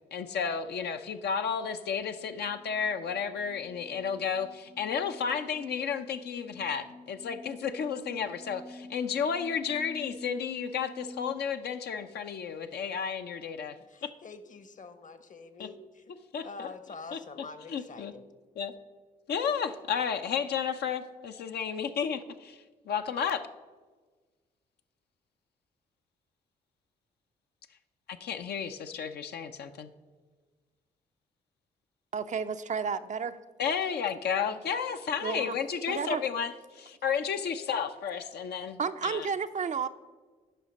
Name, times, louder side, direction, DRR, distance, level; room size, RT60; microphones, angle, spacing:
voice 1, 0.1-14.1 15.6-15.7 16.3-16.7 17.1-17.2 17.7-18.1 18.6-18.8 19.3-23.4 28.1-29.9 33.6-39.3, left 7 dB, 55° left, 7 dB, 0.6 m, -32 dB
sound 1, 3.2-11.3, left 1 dB, 80° left, 1.7 m, -49 dB
voice 2, 13.9-16.0 16.4-18.2, left 4 dB, 40° left, 12 dB, 0.9 m, -46 dB
voice 3, 32.1-33.4 35.2-35.6 35.9-36.2 38.8-39.9, right 6 dB, 40° right, 10 dB, 0.5 m, -31 dB
9.1 x 5.6 x 5.2 m, 1.4 s
hypercardioid pair, 40°, 20 cm